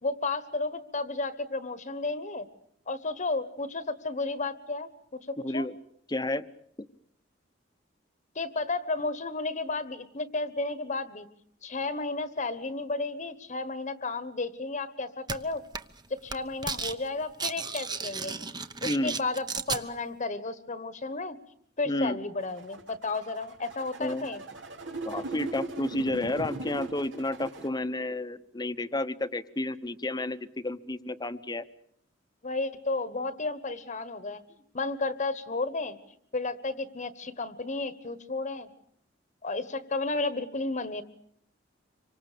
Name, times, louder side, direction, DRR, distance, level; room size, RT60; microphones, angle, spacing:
voice 1, 0.0-2.5 2.9-5.6 8.3-11.3 11.6-15.6 16.1-18.3 18.8-21.4 21.8-24.4 32.4-34.4 34.7-36.0 36.3-38.7 39.4-41.0, left 3 dB, 40° left, 13 dB, 1.3 m, -33 dB
voice 2, 5.4-5.7 6.1-6.4 18.8-19.2 21.9-22.2 24.0-24.3 25.0-31.6, left 1 dB, 20° left, 12 dB, 1.0 m, -31 dB
sound 1, 15.3-15.4 15.7-16.0 16.3-17.0 17.2-19.8, right 4 dB, 25° right, 1.0 m, -33 dB
sound 2, 22.4-27.7, right 2 dB, 75° right, 2.9 m, -39 dB
26.5 x 25.0 x 6.8 m, 0.66 s
head